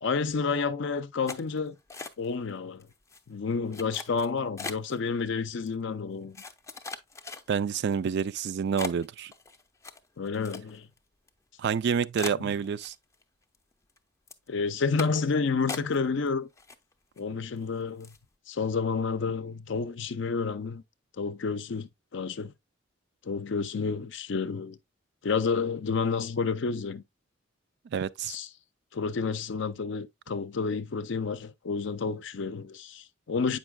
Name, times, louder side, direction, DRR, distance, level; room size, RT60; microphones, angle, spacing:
voice 1, 0.0-1.8 2.2-2.9 3.3-6.4 10.2-10.9 12.4-12.5 14.5-16.5 17.2-18.2 18.5-20.8 21.2-22.5 23.2-24.8 25.2-27.0 28.3-28.5 28.9-33.6, left 4 dB, 65° left, 0.5 m, -30 dB
sound 1, 1.3-2.5 2.8-3.2 3.7-5.0 5.7-5.8 6.3-7.8 8.3-8.4 8.8-11.0 11.3-11.4 11.7-11.8 12.2-13.2 13.5-14.0 14.3-14.5 15.0-15.3 15.7-16.3 16.6-17.2 17.6-17.7 18.0-18.3, left 3 dB, 15° left, 0.5 m, -40 dB
voice 2, 7.5-9.3 11.6-12.9 27.9-28.4, right 7 dB, 60° right, 0.3 m, -28 dB
8.0 x 5.4 x 2.2 m
head